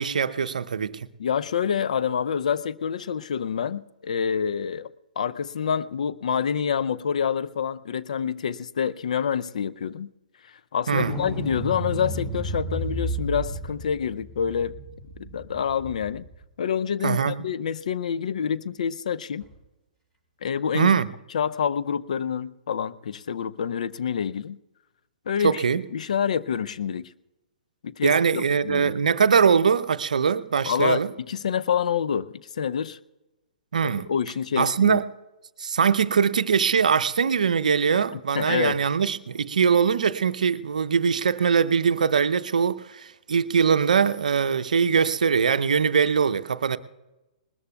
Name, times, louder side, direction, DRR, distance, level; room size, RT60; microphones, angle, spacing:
voice 1, 0.0-1.1 10.9-11.1 17.0-17.4 20.7-21.1 25.4-25.8 28.0-31.1 33.7-34.1 34.6-35.1 35.6-46.8, right 6 dB, 70° right, 0.6 m, -22 dB
voice 2, 1.2-4.9 5.2-10.1 10.7-14.7 15.2-16.3 16.6-19.4 20.4-20.9 21.3-24.6 25.3-25.6 25.9-27.1 27.8-28.9 30.7-33.0 33.8-35.0 38.1-38.7, left 7 dB, 60° left, 0.5 m, -27 dB
sound 1, 10.9-16.3 19.4-19.5, right 1 dB, 20° left, 4.8 m, -32 dB
20.5 x 20.0 x 2.3 m
figure-of-eight pair, 120°, 4 cm